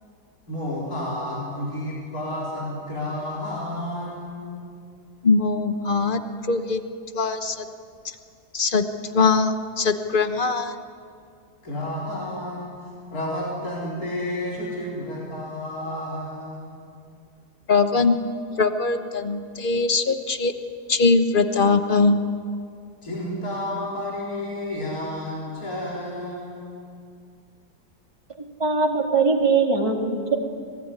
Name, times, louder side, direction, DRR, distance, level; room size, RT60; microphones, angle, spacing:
voice 1, 0.5-4.7 11.6-16.8 23.0-26.8, left 1 dB, 60° left, -4 dB, 4.5 m, -31 dB
voice 2, 5.2-6.2 6.5-6.8 7.1-7.6 8.5-8.8 9.1-10.7 17.7-18.2 18.6-20.5 20.9-22.2, left 4 dB, 35° left, 8 dB, 1.2 m, -21 dB
voice 3, 28.6-30.3, right 4 dB, 20° right, 0 dB, 2.3 m, -21 dB
24.5 x 19.0 x 9.8 m, 2.3 s
omnidirectional pair, 1.8 m